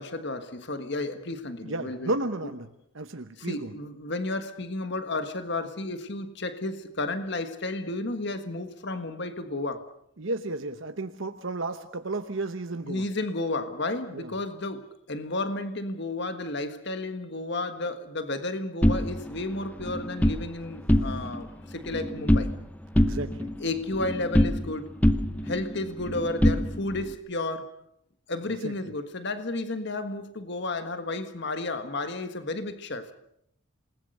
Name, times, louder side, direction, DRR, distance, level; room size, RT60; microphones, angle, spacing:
voice 1, 0.0-2.2 3.4-9.9 12.8-22.5 23.6-24.9 25.4-27.7 28.3-33.1, left 2 dB, 55° left, 1.5 m, -32 dB
voice 2, 1.6-2.7 2.9-3.8 10.2-13.0 14.1-14.3 23.0-23.5 28.6-28.7, right 2 dB, 60° right, 1.0 m, -33 dB
sound 1, 18.8-20.4 20.8-21.5 21.7-22.6 23.0-24.8 25.0-27.1, equal, 5° left, 0.8 m, -25 dB
28.0 x 20.0 x 6.6 m
head